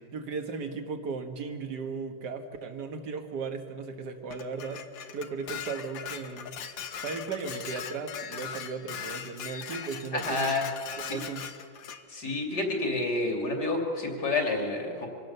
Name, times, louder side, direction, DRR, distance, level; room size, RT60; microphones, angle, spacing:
voice 1, 0.1-4.8 5.1-6.6 7.0-10.5 11.0-11.4, right 4 dB, 60° right, 6 dB, 2.0 m, -36 dB
Dishes pots and pans, 4.3-12.0, left 8 dB, 75° left, 1.8 m, -40 dB
voice 2, 10.1-10.7 11.0-11.2 12.1-15.1, left 2 dB, 60° left, 1 dB, 3.4 m, -29 dB
25.5 x 17.0 x 6.8 m, 2.3 s
omnidirectional pair, 2.1 m